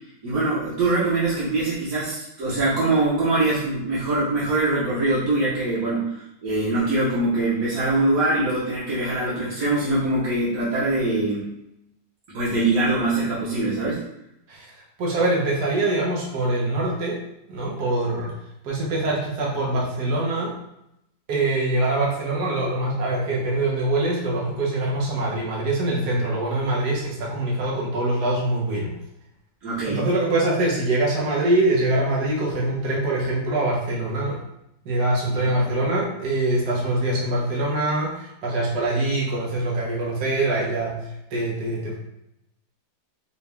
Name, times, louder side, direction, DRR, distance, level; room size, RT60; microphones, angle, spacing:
voice 1, 0.2-11.5 12.3-14.0 29.6-30.0 35.3-35.4, right 2 dB, 65° right, -9 dB, 1.4 m, -23 dB
voice 2, 14.5-17.2 17.5-18.3 18.6-20.5 21.3-28.9 29.8-34.4 34.8-42.0, right 2 dB, 80° right, -4 dB, 1.5 m, -24 dB
4.9 x 2.3 x 3.3 m, 0.82 s
omnidirectional pair, 1.7 m